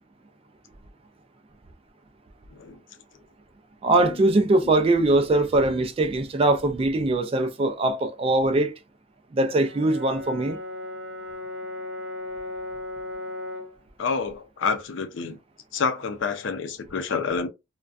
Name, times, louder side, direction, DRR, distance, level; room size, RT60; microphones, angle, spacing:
voice 1, 2.5-2.8 4.0-4.2 14.0-15.4 15.7-17.5, left 5 dB, 70° left, 0.5 m, -28 dB
voice 2, 3.8-8.7 9.3-10.6, right 2 dB, 30° right, 0.3 m, -21 dB
Brass instrument, 9.5-13.8, left 2 dB, 60° right, 0.6 m, -36 dB
2.4 x 2.2 x 2.3 m
head